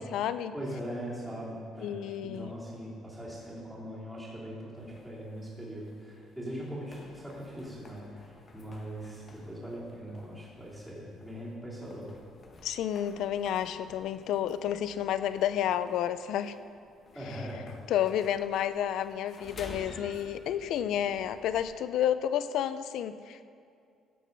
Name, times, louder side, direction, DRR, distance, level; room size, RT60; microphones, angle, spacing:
voice 1, 0.0-0.5 1.8-2.5 12.6-16.5 17.9-23.4, left 10 dB, 70° left, 13 dB, 0.5 m, -30 dB
voice 2, 0.5-12.2 17.1-17.7, equal, 5° right, -8 dB, 3.2 m, -41 dB
sound 1, 4.7-21.7, left 2 dB, 30° left, 1.3 m, -53 dB
16.0 x 6.3 x 5.3 m, 2.4 s
cardioid pair, 135°, 0 cm